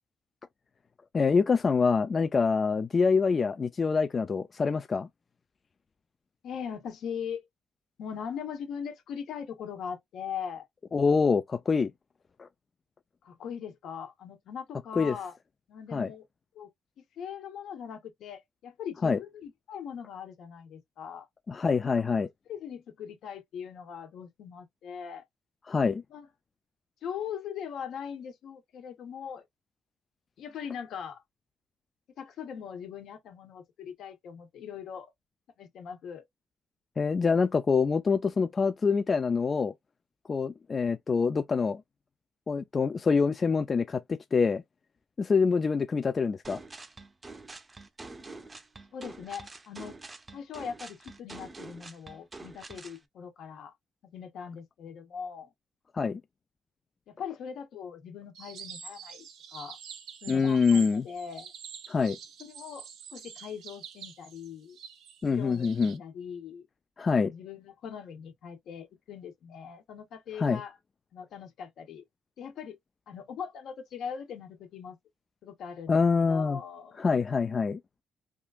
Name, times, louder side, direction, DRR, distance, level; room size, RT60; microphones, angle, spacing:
voice 1, 1.1-5.1 10.9-11.9 12.4-12.5 15.0-15.2 15.9-16.1 19.0-19.2 21.5-22.3 25.7-26.0 37.0-39.7 40.3-41.8 42.5-44.6 45.2-46.6 55.9-56.2 60.3-61.0 61.9-62.2 65.2-66.0 67.0-67.3 70.4-70.6 75.9-76.6 77.0-77.8, left 5 dB, 35° left, 0.3 m, -25 dB
voice 2, 6.4-7.5 8.0-10.7 13.2-15.3 15.7-16.2 16.5-16.7 17.0-21.3 22.5-25.2 26.1-26.3 27.0-29.4 30.4-31.2 32.2-35.1 35.6-36.2 48.9-50.0 50.3-53.7 54.0-55.5 57.1-59.8 60.2-61.5 62.4-64.8 65.3-66.7 67.2-70.8 71.1-72.0 72.4-72.8 73.1-75.0 75.4-77.2, left 7 dB, 75° left, 1.2 m, -40 dB
sound 1, 46.4-53.0, right 3 dB, 25° right, 0.6 m, -46 dB
sound 2, 58.3-66.0, right 7 dB, 85° right, 0.9 m, -46 dB
3.6 x 2.4 x 2.4 m
cardioid pair, 90°, 0 cm